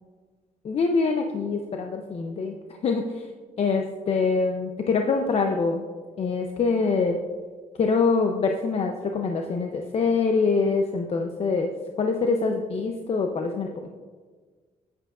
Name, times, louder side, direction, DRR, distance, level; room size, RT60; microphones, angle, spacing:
voice 1, 0.6-2.6 2.8-3.3 3.6-5.8 6.2-7.2 7.8-11.7 12.0-13.9, left 4 dB, 50° left, 4 dB, 0.6 m, -24 dB
10.5 x 9.2 x 2.5 m, 1.5 s
cardioid pair, 95°, 14 cm